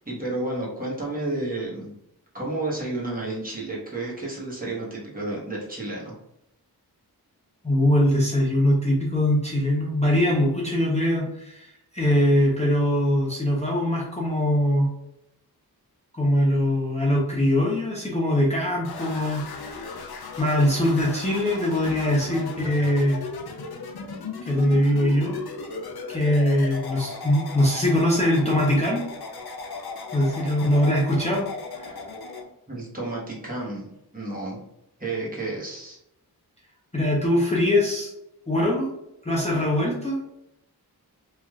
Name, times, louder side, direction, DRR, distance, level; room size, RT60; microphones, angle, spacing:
voice 1, 0.0-1.9 2.3-6.1 32.7-34.6 35.0-36.0, right 2 dB, 20° right, -5 dB, 1.0 m, -31 dB
voice 2, 7.6-14.9 16.1-19.8 20.4-23.2 24.4-25.4 26.1-29.1 30.1-31.5 31.7-32.0 36.9-38.1 38.5-38.9 39.2-40.2, left 1 dB, 15° left, -4 dB, 0.5 m, -22 dB
sound 1, 18.8-32.4, left 4 dB, 75° left, 0.6 m, -36 dB
3.2 x 2.4 x 2.3 m, 0.82 s
wide cardioid pair, 90°, 39 cm